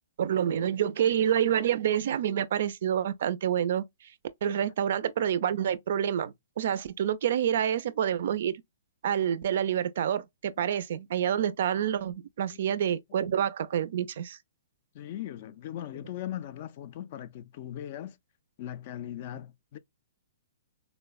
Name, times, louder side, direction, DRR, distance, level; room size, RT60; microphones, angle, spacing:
voice 1, 0.2-3.8 4.4-8.5 9.0-14.4, right 9 dB, 55° right, 0.4 m, -28 dB
voice 2, 14.9-18.2 18.6-19.8, left 11 dB, 40° left, 0.3 m, -39 dB
4.0 x 2.0 x 2.3 m
hypercardioid pair, 160°, 0 cm